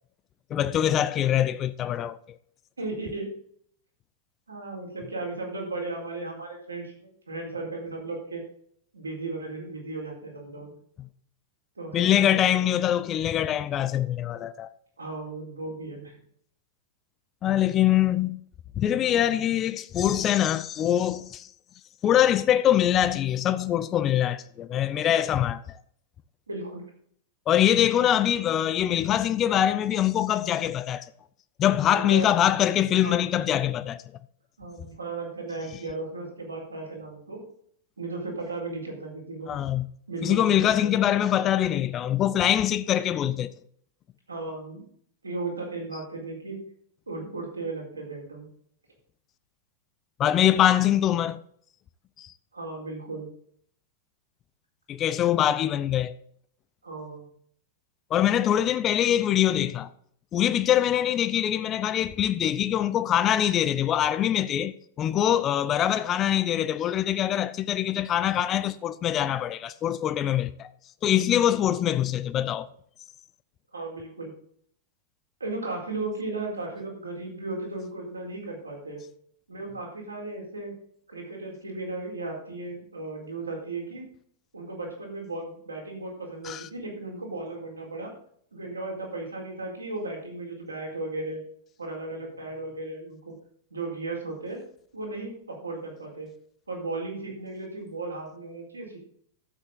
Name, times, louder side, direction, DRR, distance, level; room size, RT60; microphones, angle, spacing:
voice 1, 0.5-2.4 11.9-14.7 17.4-18.4 18.8-21.5 22.0-25.6 27.5-31.0 31.6-34.0 39.5-39.9 40.2-43.5 50.2-51.4 52.2-52.3 54.9-56.1 58.1-59.9 60.3-70.7 71.0-72.7 86.4-86.6, left 11 dB, 30° left, 0.6 m, -23 dB
voice 2, 2.8-3.3 4.5-8.4 8.9-10.7 11.8-12.5 15.0-16.2 26.5-26.8 31.9-32.3 33.0-33.3 34.6-37.4 38.0-39.5 40.1-40.9 44.3-44.8 45.2-46.6 47.1-48.5 52.5-53.3 56.8-57.3 71.5-71.6 73.7-74.3 75.4-79.0 79.5-80.8 81.1-84.0 84.5-88.1 88.5-91.4 91.8-93.3 93.7-94.6 94.9-96.3 96.7-99.0, right 3 dB, 80° right, 4.2 m, -35 dB
12.5 x 8.1 x 3.9 m
figure-of-eight pair, 95°, 0 cm